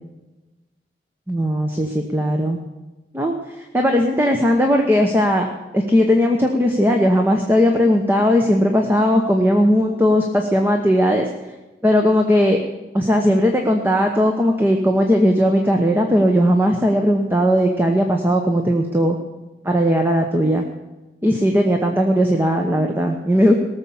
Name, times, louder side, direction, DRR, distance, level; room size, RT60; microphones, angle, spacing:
voice 1, 1.3-2.6 3.1-5.5 5.7-11.3 11.8-12.6 12.9-19.2 19.6-20.6 21.2-23.5, equal, 10° right, 3 dB, 1.0 m, -17 dB
18.0 x 7.2 x 7.1 m, 1.1 s
head